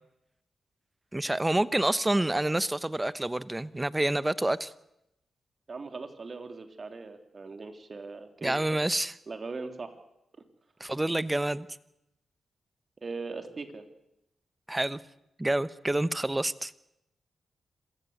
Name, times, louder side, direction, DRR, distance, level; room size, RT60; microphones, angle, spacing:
voice 1, 1.1-4.7 8.4-9.1 10.8-11.7 14.7-15.0 15.4-16.7, right 1 dB, 20° right, 16 dB, 1.1 m, -28 dB
voice 2, 5.7-8.5 9.3-9.9 10.3-10.4 13.0-13.8, right 4 dB, 50° right, 7 dB, 3.2 m, -39 dB
26.5 x 15.5 x 8.1 m, 0.85 s
supercardioid pair, 45°, 0 cm